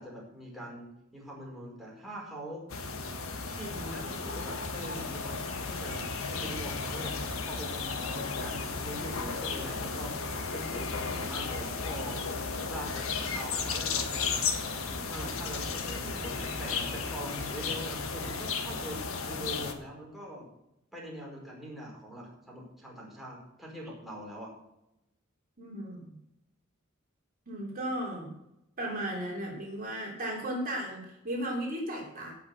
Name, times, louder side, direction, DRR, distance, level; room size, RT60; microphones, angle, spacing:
voice 1, 0.0-2.6 3.5-7.1 7.4-10.1 10.5-12.2 12.7-14.5 15.0-20.5 20.9-24.5, equal, ahead, -5 dB, 4.9 m, -43 dB
sound 1, 2.7-19.7, left 4 dB, 75° left, 1.6 m, -34 dB
voice 2, 25.6-26.1 27.5-28.3 28.8-32.3, right 1 dB, 45° right, -2 dB, 3.8 m, -35 dB
17.0 x 6.1 x 6.8 m, 0.85 s
head